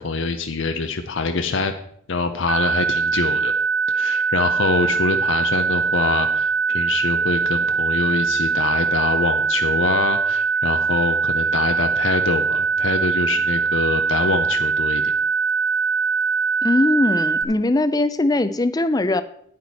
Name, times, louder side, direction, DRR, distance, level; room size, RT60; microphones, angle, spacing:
voice 1, 0.0-1.7 2.1-3.5 3.9-15.1, left 3 dB, 70° left, 6 dB, 0.7 m, -24 dB
sound 1, 2.5-17.4, right 5 dB, 75° right, 0.6 m, -22 dB
voice 2, 16.6-19.2, left 2 dB, 20° left, 13 dB, 0.5 m, -20 dB
9.4 x 8.6 x 4.2 m, 0.65 s
head